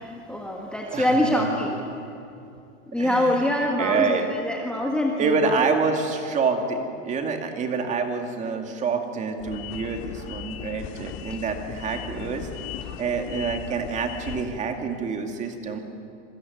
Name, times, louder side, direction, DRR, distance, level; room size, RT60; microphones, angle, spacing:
voice 1, 0.0-2.0 2.9-5.7 6.7-6.8 11.3-11.4 11.7-12.3 12.8-13.0, left 1 dB, ahead, 0 dB, 1.6 m, -26 dB
voice 2, 0.8-1.4 3.0-3.3 3.8-4.3 5.2-12.5 13.0-15.8, right 5 dB, 20° right, 5 dB, 2.3 m, -27 dB
sound 1, 9.4-14.4, left 10 dB, 30° left, 1.9 m, -37 dB
27.0 x 22.5 x 9.5 m, 2.6 s
supercardioid pair, 160°, 39 cm